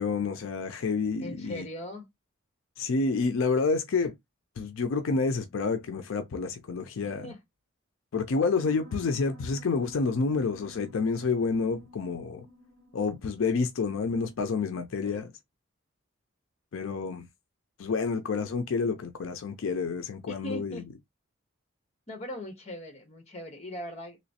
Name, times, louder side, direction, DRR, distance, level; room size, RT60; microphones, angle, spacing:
voice 1, 0.0-1.7 2.8-4.1 4.6-7.3 8.1-12.5 12.9-15.3 16.7-17.3 17.8-20.8, left 4 dB, 75° left, 0.4 m, -29 dB
voice 2, 1.2-2.1 7.0-7.4 15.0-15.3 20.3-20.8 22.1-24.2, equal, 30° left, 1.0 m, -40 dB
Piano, 8.5-14.7, left 1 dB, 85° right, 1.1 m, -53 dB
3.1 x 3.0 x 2.7 m
head